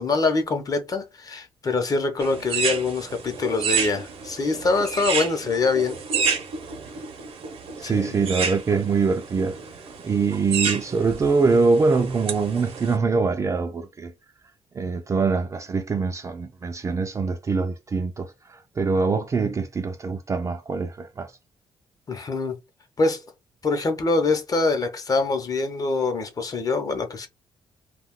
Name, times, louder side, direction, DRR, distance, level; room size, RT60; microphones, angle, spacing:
voice 1, 0.0-6.0 7.8-8.1 22.1-22.6 23.0-23.2 23.6-27.3, left 3 dB, 35° left, 0.8 m, -24 dB
sound 1, 2.2-13.0, right 6 dB, 65° right, 0.7 m, -30 dB
voice 2, 7.8-9.6 10.0-14.1 14.7-21.3, right 4 dB, 30° right, 0.4 m, -23 dB
2.3 x 2.3 x 3.6 m
cardioid pair, 110°, 10 cm